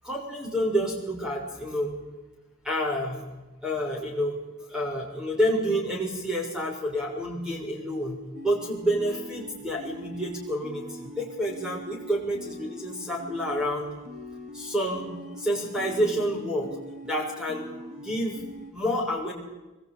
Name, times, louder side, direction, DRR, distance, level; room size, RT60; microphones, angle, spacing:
voice 1, 0.0-1.9 2.6-3.2 3.6-4.3 4.7-8.2 8.4-13.9 14.5-15.1 15.4-16.7 17.0-17.7 18.0-18.4 18.7-19.3, equal, 5° right, -1 dB, 6.4 m, -28 dB
sound 1, 8.3-18.7, equal, 35° right, 2.3 m, -43 dB
25.5 x 22.0 x 9.2 m, 1.1 s
head